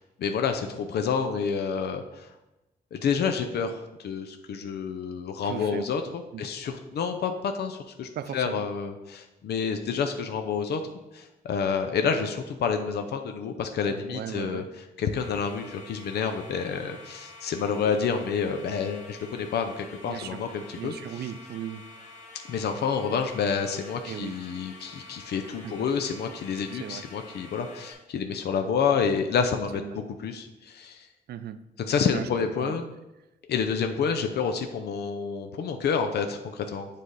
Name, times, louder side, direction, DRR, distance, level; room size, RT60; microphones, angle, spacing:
voice 1, 0.2-2.3 2.9-10.8 11.1-14.6 15.0-20.9 22.5-31.1 31.8-32.9 33.5-36.9, left 6 dB, 80° left, 6 dB, 0.5 m, -29 dB
voice 2, 5.4-5.9 6.3-6.5 8.1-8.6 13.8-14.7 20.1-20.4 20.8-21.8 24.0-24.4 25.6-25.9 26.7-27.0 29.7-30.0 31.3-31.6 32.1-32.3 32.6-32.8, right 10 dB, 75° right, 12 dB, 0.4 m, -37 dB
sound 1, 15.2-27.9, left 2 dB, 45° left, 1.2 m, -48 dB
7.4 x 3.3 x 3.9 m, 0.96 s
wide cardioid pair, 125°, 17 cm